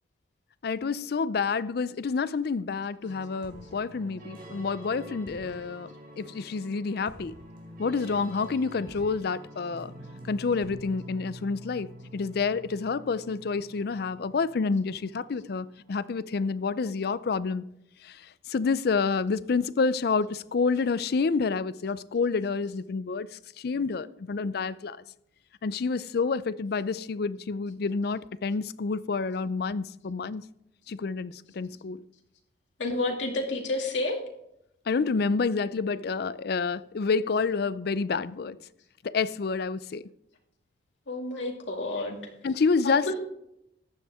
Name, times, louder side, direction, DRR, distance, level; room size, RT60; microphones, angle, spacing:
voice 1, 0.6-5.9 6.2-7.3 7.8-9.9 10.3-17.6 18.0-23.3 23.6-25.0 25.6-30.4 30.9-32.0 34.9-38.6 39.0-40.0 42.4-43.2, left 4 dB, 60° left, 0.4 m, -28 dB
sound 1, 3.1-15.6, right 1 dB, 55° right, 4.0 m, -47 dB
voice 2, 32.8-34.2 41.1-42.3 42.8-43.0, left 2 dB, 85° left, 2.4 m, -30 dB
14.5 x 10.0 x 3.6 m
head